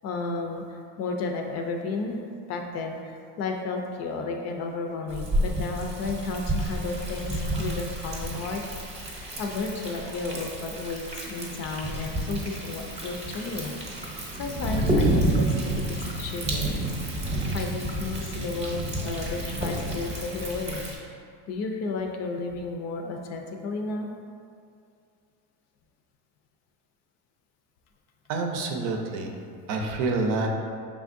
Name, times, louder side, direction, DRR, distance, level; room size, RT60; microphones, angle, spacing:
voice 1, 0.0-2.2 2.5-8.6 9.4-13.7 14.4-15.8 16.2-16.7 17.5-20.8 21.5-24.1 28.9-29.0, left 3 dB, 45° left, 3 dB, 0.4 m, -32 dB
Thunder, 5.1-21.0, right 1 dB, 20° right, 0.8 m, -30 dB
voice 2, 28.3-29.4 29.7-30.5, right 3 dB, 60° right, 2 dB, 0.6 m, -27 dB
5.1 x 3.6 x 2.5 m, 2.3 s
cardioid pair, 135°, 36 cm